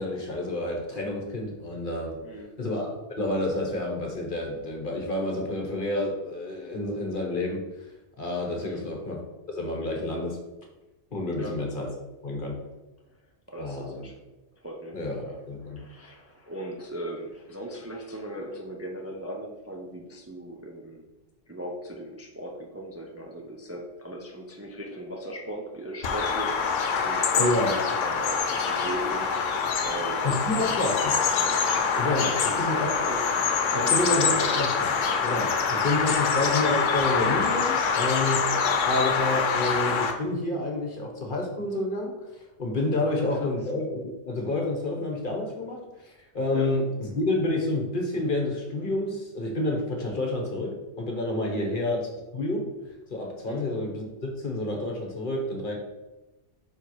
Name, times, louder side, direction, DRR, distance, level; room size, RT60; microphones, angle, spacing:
voice 1, 0.0-2.2 2.6-7.6 8.2-9.2 9.5-10.4 11.1-11.9 12.2-12.6 13.6-14.0 14.9-15.8 27.4-27.7 30.2-31.2 31.9-32.3 32.6-32.9 33.9-34.9 35.2-38.5 38.8-52.1 52.3-52.7 53.1-55.7, left 2 dB, 45° left, 1 dB, 1.3 m, -29 dB
voice 2, 2.2-2.5 8.6-8.9 11.4-11.6 13.5-14.2 14.5-15.4 15.6-21.1 21.5-31.0 32.1-33.3 33.7-34.7 38.5-38.7 43.0-43.5 46.5-46.7 51.5-51.8 53.5-53.7, right 1 dB, 15° right, -1 dB, 0.6 m, -38 dB
Bird vocalization bird call bird song, 26.0-40.1, left 5 dB, 85° left, 1.1 m, -25 dB
5.6 x 4.4 x 4.7 m, 1.0 s
omnidirectional pair, 1.3 m